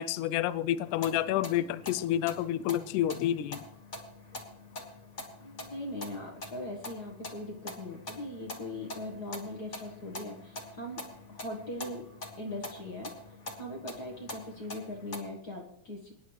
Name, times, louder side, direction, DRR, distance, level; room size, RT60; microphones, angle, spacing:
voice 1, 0.0-3.6, left 12 dB, 80° left, 16 dB, 1.9 m, -29 dB
sound 1, 0.8-15.2, left 2 dB, 35° left, 1.2 m, -45 dB
voice 2, 5.4-11.0 11.3-12.0 12.4-13.1 13.5-16.1, left 1 dB, 55° left, 0 dB, 1.1 m, -40 dB
24.0 x 10.0 x 3.2 m, 0.74 s
omnidirectional pair, 3.9 m